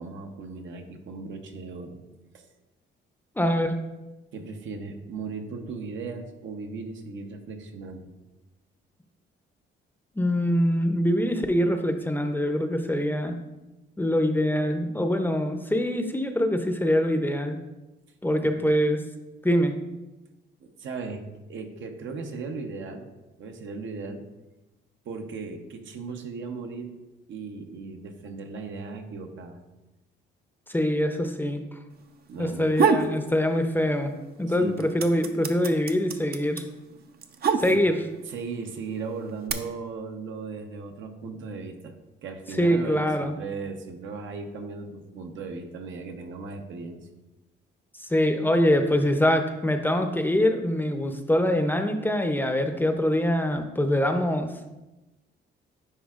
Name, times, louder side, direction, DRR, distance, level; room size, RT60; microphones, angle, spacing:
voice 1, 0.0-2.0 2.3-2.5 4.3-8.1 20.6-23.1 23.4-24.2 25.0-26.9 27.3-29.6 32.3-32.7 34.5-34.9 37.6-37.8 38.3-41.9 42.2-47.1, right 4 dB, 75° right, 4 dB, 0.9 m, -37 dB
voice 2, 3.4-3.8 10.2-13.4 14.0-17.6 18.2-19.0 19.4-19.8 30.7-31.6 32.4-34.1 34.4-36.6 37.6-38.0 42.6-43.3 48.0-54.5, equal, 10° left, 6 dB, 0.6 m, -24 dB
sound 1, 32.5-33.1 33.5-34.3 34.5-38.1 38.9-39.5, right 6 dB, 50° right, 0.6 m, -25 dB
10.0 x 4.5 x 2.4 m, 1.0 s
cardioid pair, 90°, 20 cm